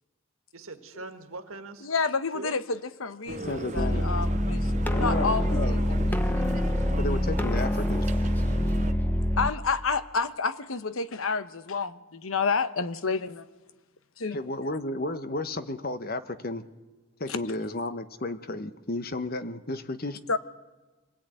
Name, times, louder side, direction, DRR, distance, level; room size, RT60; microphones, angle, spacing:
voice 1, 0.5-2.6 5.4-6.2, right 3 dB, 75° right, 7 dB, 1.8 m, -43 dB
voice 2, 1.8-6.5 9.4-13.5 14.2-14.4 17.3-17.4 20.3-20.4, left 4 dB, 75° left, 12 dB, 1.1 m, -30 dB
sound 1, 3.3-8.9, right 2 dB, 35° right, 0.7 m, -38 dB
voice 3, 3.4-4.1 4.9-6.6 7.0-8.1 14.3-16.6 17.2-20.2, left 2 dB, 45° left, 10 dB, 1.1 m, -33 dB
sound 2, 3.8-9.5, left 1 dB, 10° left, 0.9 m, -26 dB
25.5 x 17.5 x 9.2 m, 1.2 s
head